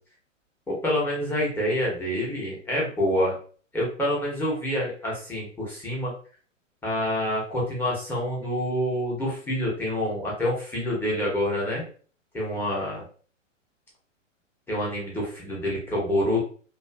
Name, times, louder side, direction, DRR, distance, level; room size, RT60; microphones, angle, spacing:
voice 1, 0.7-3.4 3.7-6.1 6.8-11.8 12.3-13.1 14.7-16.4, left 1 dB, 5° left, -5 dB, 0.7 m, -27 dB
2.5 x 2.4 x 2.3 m, 0.42 s
hypercardioid pair, 125°, 39 cm